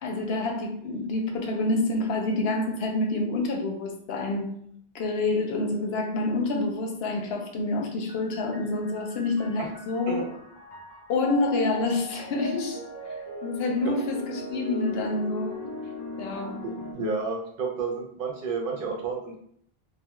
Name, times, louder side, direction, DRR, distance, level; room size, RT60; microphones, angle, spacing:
voice 1, 0.0-4.6 4.9-10.3 11.1-12.8 13.4-15.6 16.2-16.6, left 2 dB, 80° left, 2 dB, 0.8 m, -27 dB
sound 1, 8.1-16.9, left 2 dB, 40° left, 0.3 m, -39 dB
voice 2, 16.6-19.4, right 4 dB, 65° right, 1 dB, 0.7 m, -31 dB
2.3 x 2.0 x 2.9 m, 0.65 s
omnidirectional pair, 1.0 m